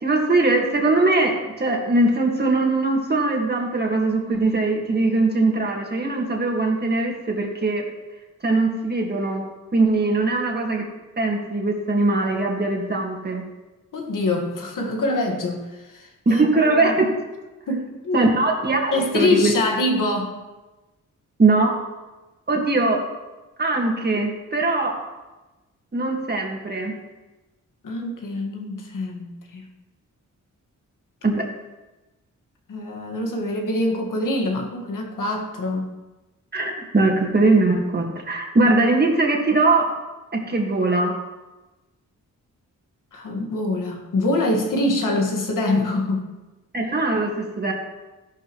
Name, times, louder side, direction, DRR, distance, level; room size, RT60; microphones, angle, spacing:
voice 1, 0.0-7.8 8.4-9.4 9.7-10.8 11.2-13.4 16.3-17.1 18.1-19.5 21.4-21.8 22.5-23.0 23.6-25.0 25.9-26.9 31.2-31.5 36.5-39.9 40.3-41.1 46.7-47.7, right 2 dB, 30° right, 1 dB, 1.8 m, -21 dB
voice 2, 13.9-16.4 16.8-17.0 17.7-18.3 18.9-20.4 27.8-29.6 32.7-35.9 43.1-46.3, left 2 dB, 80° left, 1 dB, 1.8 m, -24 dB
14.0 x 11.5 x 3.1 m, 1.1 s
wide cardioid pair, 120°, 31 cm